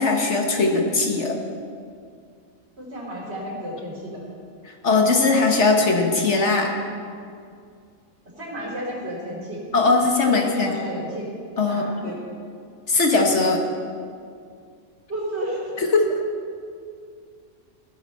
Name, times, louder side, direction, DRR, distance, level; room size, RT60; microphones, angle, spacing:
voice 1, 0.0-1.4 4.8-6.7 9.7-10.7 11.6-12.1 12.9-13.6 15.8-16.1, left 3 dB, 60° left, 2 dB, 1.4 m, -20 dB
voice 2, 2.8-4.2 8.4-9.6 10.2-11.3 11.7-12.2 15.1-15.7, equal, 50° right, -5 dB, 3.9 m, -32 dB
15.0 x 12.5 x 4.2 m, 2.3 s
omnidirectional pair, 1.4 m